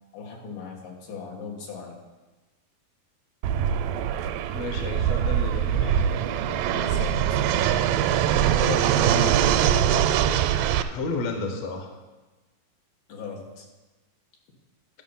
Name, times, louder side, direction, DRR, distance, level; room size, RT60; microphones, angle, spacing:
voice 1, 0.1-2.0 6.7-7.4 13.1-13.6, left 4 dB, 85° left, 0 dB, 3.4 m, -38 dB
Fixed-wing aircraft airplane, 3.4-10.8, right 10 dB, 85° right, 2.2 m, -23 dB
voice 2, 4.5-6.6 8.5-10.3 10.6-11.9, left 3 dB, 60° left, 4 dB, 1.9 m, -33 dB
12.0 x 6.0 x 5.6 m, 1.2 s
omnidirectional pair, 4.0 m